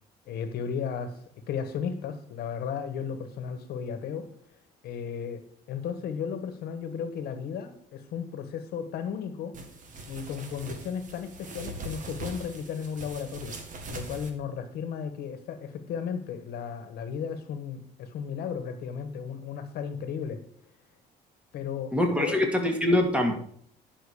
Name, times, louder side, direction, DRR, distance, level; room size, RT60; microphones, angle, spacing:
voice 1, 0.3-1.2 1.5-4.3 4.8-5.4 5.7-9.5 10.1-13.5 13.9-20.4 21.5-21.9 22.2-22.4, left 7 dB, 70° left, 9 dB, 1.3 m, -34 dB
sound 1, 9.5-14.3, right 2 dB, 50° right, 1.9 m, -41 dB
voice 2, 21.9-23.4, left 1 dB, 5° right, 2 dB, 2.2 m, -24 dB
10.5 x 6.2 x 4.9 m, 0.62 s
cardioid pair, 110°, 17 cm